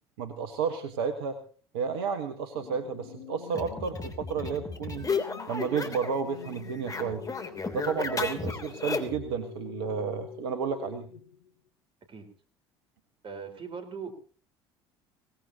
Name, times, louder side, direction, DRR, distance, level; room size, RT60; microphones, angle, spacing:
voice 1, 0.2-1.4 1.7-5.1 5.5-7.2 7.7-11.1, right 6 dB, 75° right, 7 dB, 1.4 m, -32 dB
sound 1, 2.5-11.5, left 9 dB, 80° left, 1.1 m, -46 dB
sound 2, 3.5-6.2 6.5-9.3, left 4 dB, 25° left, 3.2 m, -34 dB
voice 2, 13.2-14.1, right 6 dB, 40° right, 6 dB, 4.5 m, -39 dB
23.0 x 18.5 x 2.9 m, 0.41 s
hypercardioid pair, 60°, 13 cm